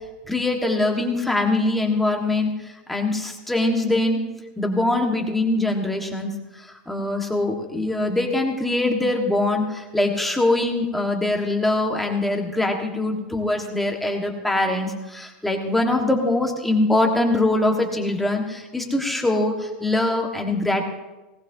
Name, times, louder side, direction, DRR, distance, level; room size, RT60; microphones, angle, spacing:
voice 1, 0.2-4.3 4.6-20.8, left 2 dB, 5° left, 1 dB, 1.6 m, -23 dB
19.5 x 18.5 x 2.8 m, 1.1 s
supercardioid pair, 175°, 5 cm